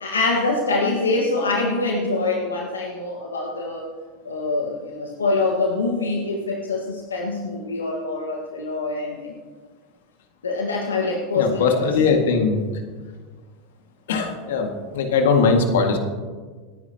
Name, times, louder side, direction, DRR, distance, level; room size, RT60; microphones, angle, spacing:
voice 1, 0.0-3.9 4.2-9.3 10.4-11.9, left 3 dB, 85° left, 0 dB, 1.5 m, -24 dB
voice 2, 11.4-12.6 14.1-16.0, left 5 dB, 70° left, 4 dB, 1.9 m, -20 dB
26.0 x 9.9 x 2.9 m, 1.5 s
hypercardioid pair, 85°, 0 cm